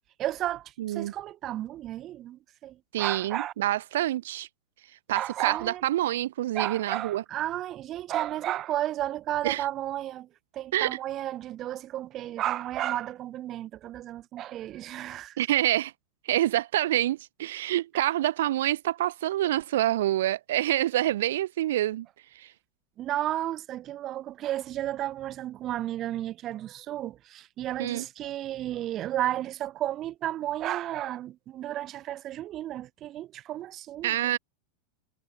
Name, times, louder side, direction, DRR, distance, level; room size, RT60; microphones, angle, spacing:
voice 1, 0.2-3.5 5.1-5.8 6.5-10.3 10.5-15.4 23.0-34.4, right 13 dB, 30° right, 0.9 m, -33 dB
voice 2, 0.8-1.1 2.9-4.5 5.1-7.2 9.4-9.7 10.7-11.0 15.4-15.9 16.2-22.1 22.3-22.5 27.8-28.0 34.0-34.4, right 13 dB, 55° right, 0.6 m, -27 dB
figure-of-eight pair, 90°, 0 cm